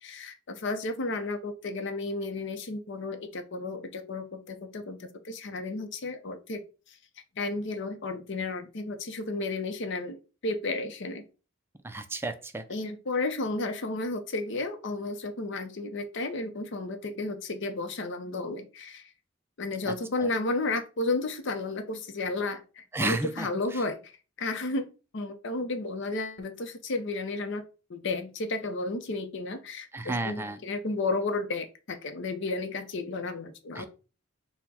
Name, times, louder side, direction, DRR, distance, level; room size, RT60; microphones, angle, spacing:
voice 1, 0.0-6.6 7.4-10.2 10.4-11.3 12.7-19.0 19.6-24.1 24.4-27.6 27.9-33.9, left 2 dB, 60° left, 7 dB, 0.6 m, -33 dB
voice 2, 11.8-12.6 19.9-20.3 22.9-23.8 29.9-30.6 33.7-33.8, right 2 dB, 10° right, 8 dB, 0.4 m, -33 dB
4.3 x 2.2 x 4.1 m, 0.34 s
head